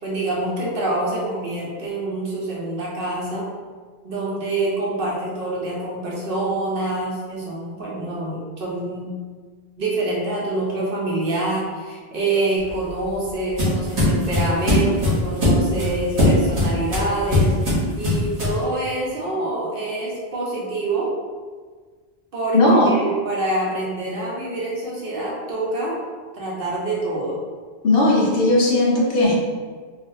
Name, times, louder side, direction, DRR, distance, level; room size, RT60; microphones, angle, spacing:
voice 1, 0.0-3.5 4.0-9.1 9.8-21.1 22.3-22.6 22.8-26.0 26.3-27.4, right 2 dB, 60° right, -4 dB, 0.9 m, -26 dB
sound 1, 12.6-18.6, left 1 dB, 90° right, 1.4 m, -20 dB
voice 2, 22.5-22.9 27.8-29.4, left 1 dB, 65° left, -4 dB, 0.9 m, -17 dB
3.4 x 2.4 x 2.6 m, 1.5 s
omnidirectional pair, 1.1 m